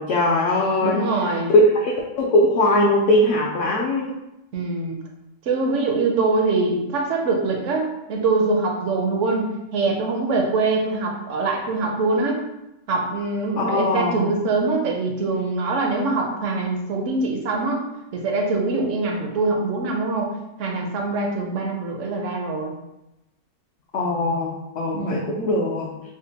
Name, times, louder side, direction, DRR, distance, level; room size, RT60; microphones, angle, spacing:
voice 1, 0.0-1.0 1.7-4.1 13.6-14.3 23.9-25.9, left 1 dB, 65° left, -3 dB, 0.8 m, -21 dB
voice 2, 0.8-1.5 4.5-5.0 5.5-12.4 12.9-17.8 18.1-20.3 20.6-22.7 24.9-25.4, right 3 dB, 65° right, 2 dB, 0.8 m, -23 dB
5.0 x 2.1 x 2.8 m, 0.91 s
omnidirectional pair, 1.6 m